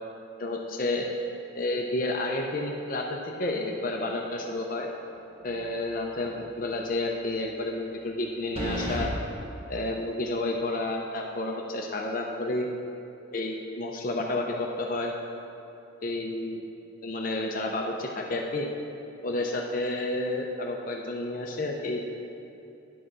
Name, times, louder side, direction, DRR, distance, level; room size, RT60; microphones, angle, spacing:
voice 1, 0.4-1.1 1.5-4.9 5.4-9.1 9.7-12.7 13.3-15.1 16.0-16.6 17.0-18.7 19.2-22.0, left 2 dB, 45° left, 1 dB, 0.6 m, -30 dB
sound 1, 5.4-5.9 6.3-6.4 8.5-9.1, right 1 dB, 30° right, 1.1 m, -32 dB
9.8 x 4.8 x 6.2 m, 2.8 s
head